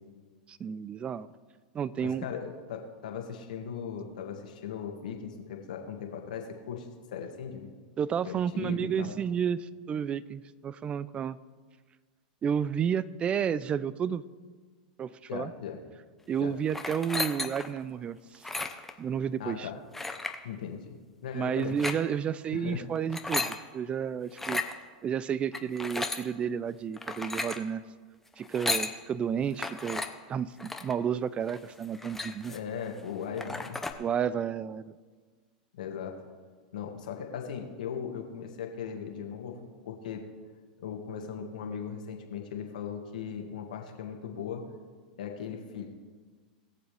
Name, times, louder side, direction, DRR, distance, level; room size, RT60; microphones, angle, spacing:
voice 1, 0.5-1.3 1.7-2.2 8.0-11.4 12.4-14.2 15.0-15.5 16.3-18.5 19.0-19.7 21.3-24.6 25.0-27.8 28.4-30.0 30.3-32.5 34.0-34.8, right 8 dB, 25° right, 18 dB, 0.4 m, -31 dB
voice 2, 2.0-7.7 8.2-9.1 15.3-15.8 16.3-16.5 19.4-19.8 20.4-20.9 21.2-21.8 22.5-22.8 32.5-33.8 35.7-36.1 36.7-40.2 40.8-44.6 45.2-45.9, left 7 dB, 75° left, 2 dB, 1.8 m, -38 dB
sound 1, 16.7-17.8 18.3-18.9 19.9-20.4 21.6-22.0 23.0-23.6 24.3-24.7 25.5-26.2 27.0-27.6 28.4-28.9 29.6-30.1 30.6-30.9 31.5-31.6 31.8-32.7 33.1-33.2 33.4-33.9, left 2 dB, 5° left, 0.8 m, -34 dB
20.5 x 7.1 x 3.4 m, 1.5 s
hypercardioid pair, 105°, 4 cm